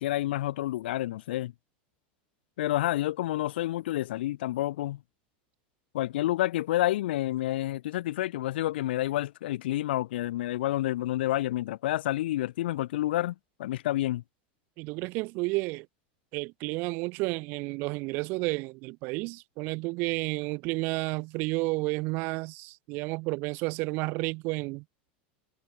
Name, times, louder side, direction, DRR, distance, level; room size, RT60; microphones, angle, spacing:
voice 1, 0.0-1.5 2.6-5.0 5.9-13.3 13.6-14.2, left 15 dB, 90° left, 0.6 m, -29 dB
voice 2, 14.8-15.9 16.3-24.8, right 26 dB, 40° right, 0.5 m, -31 dB
supercardioid pair, 170°, 5 cm